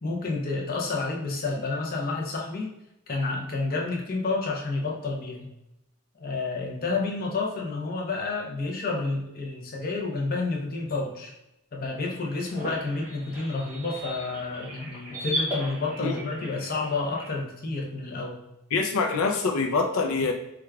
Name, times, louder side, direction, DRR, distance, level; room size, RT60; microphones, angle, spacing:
voice 1, 0.0-2.7 3.1-5.5 6.2-11.3 11.7-18.4, left 3 dB, 45° left, -1 dB, 0.6 m, -30 dB
sound 1, 11.9-17.4, equal, 10° right, 1.1 m, -36 dB
voice 2, 18.7-20.3, left 4 dB, 85° left, 3 dB, 0.4 m, -25 dB
4.7 x 2.3 x 2.3 m, 0.88 s
head